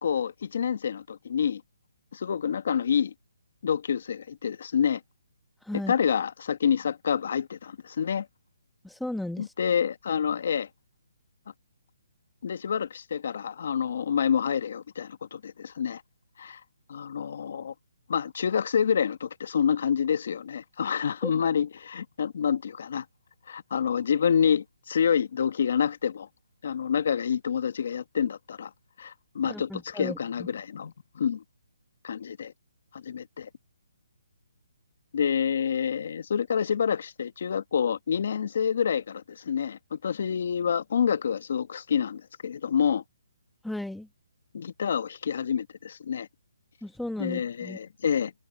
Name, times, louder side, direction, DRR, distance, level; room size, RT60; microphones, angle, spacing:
voice 1, 0.0-1.6 2.1-3.1 3.6-5.0 5.9-8.3 9.4-10.7 12.4-16.0 16.4-16.6 16.9-17.7 18.1-23.0 23.5-26.3 26.6-28.7 29.0-31.4 32.0-32.5 32.9-33.5 35.1-43.0 44.5-46.3 47.2-48.3, left 7 dB, 55° left, 1.6 m, -28 dB
voice 2, 5.6-5.9 8.8-9.5 21.2-21.3 29.4-30.5 43.6-44.1 46.8-47.8, left 1 dB, ahead, 1.3 m, -35 dB
hypercardioid pair, 165°, 0 cm